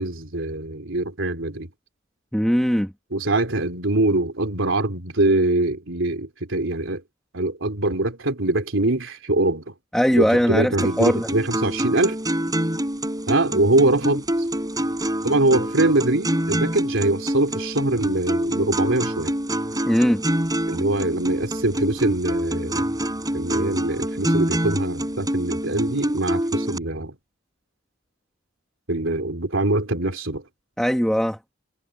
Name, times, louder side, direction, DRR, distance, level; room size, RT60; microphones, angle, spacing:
voice 1, 0.0-1.7 3.1-7.0 7.3-9.7 10.1-12.2 13.3-14.2 15.2-19.3 20.7-22.9 23.3-27.2 28.9-30.4, right 2 dB, 75° right, 3.6 m, -23 dB
voice 2, 2.3-2.9 9.9-11.3 19.9-20.2 30.8-31.4, equal, 5° left, 1.4 m, -20 dB
sound 1, 10.8-26.8, right 1 dB, 20° right, 6.1 m, -26 dB
head